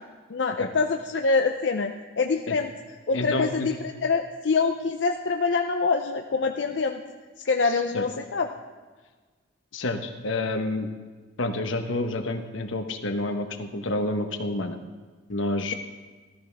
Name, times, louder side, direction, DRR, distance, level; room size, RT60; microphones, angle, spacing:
voice 1, 0.3-2.7 3.1-7.0 7.4-8.5, left 4 dB, 65° left, 4 dB, 0.5 m, -25 dB
voice 2, 3.1-3.7 7.9-8.0 9.7-10.9 11.4-14.8 15.3-15.8, left 2 dB, 85° left, 6 dB, 1.1 m, -28 dB
14.5 x 14.5 x 3.5 m, 1.4 s
head